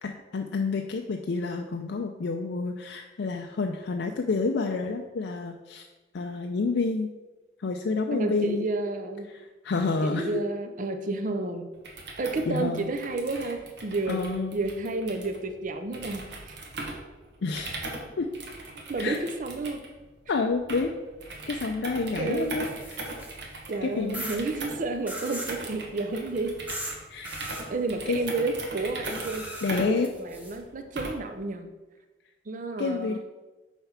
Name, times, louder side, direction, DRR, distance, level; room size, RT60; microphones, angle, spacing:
voice 1, 0.0-5.9 6.1-7.1 7.6-8.6 9.6-10.4 12.5-12.9 14.1-14.6 17.4-17.7 18.2-18.3 19.0-19.2 20.3-20.9 21.5-23.0 23.8-24.3 27.1-27.4 28.1-28.2 29.6-30.1 32.8-33.2, left 4 dB, 65° left, 3 dB, 0.4 m, -29 dB
voice 2, 8.1-9.3 10.0-11.7 12.2-14.2 14.5-16.6 18.9-19.8 22.2-22.5 23.7-26.5 27.7-29.5 29.8-31.7 32.5-33.2, right 3 dB, 45° right, 6 dB, 0.5 m, -31 dB
sound 1, 11.7-31.4, right 2 dB, 65° right, 1.2 m, -40 dB
sound 2, 22.4-23.5 24.1-24.4 25.1-25.6 26.7-27.0 27.3-27.6 29.0-30.6, right 1 dB, 10° right, 1.0 m, -38 dB
5.7 x 4.4 x 5.7 m, 1.2 s
head